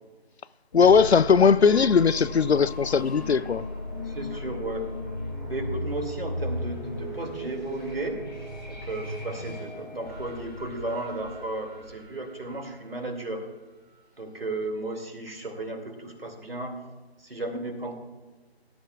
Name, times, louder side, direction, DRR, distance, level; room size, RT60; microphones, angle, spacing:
voice 1, 0.7-3.7, left 6 dB, 80° left, 0.5 m, -19 dB
sound 1, 0.7-13.4, left 1 dB, 20° left, 3.1 m, -36 dB
voice 2, 4.1-4.9 5.4-8.3 8.7-13.5 14.2-16.8 17.2-17.9, right 2 dB, 60° right, 2.6 m, -34 dB
18.5 x 12.5 x 2.4 m
figure-of-eight pair, 160°, 32 cm